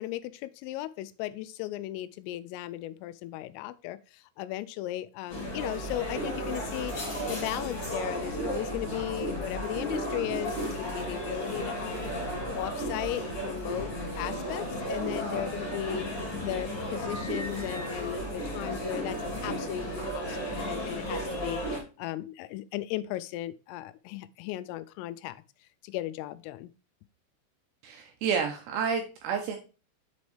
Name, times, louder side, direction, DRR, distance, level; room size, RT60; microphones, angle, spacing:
voice 1, 0.0-7.0 7.3-12.0 12.5-13.9 14.2-16.1 16.4-25.4 25.8-26.7, left 15 dB, 90° left, 3.2 m, -36 dB
sound 1, 5.3-21.8, equal, 35° left, 3.2 m, -34 dB
voice 2, 27.8-29.6, right 6 dB, 80° right, 2.5 m, -30 dB
7.0 x 5.2 x 3.2 m
omnidirectional pair, 5.7 m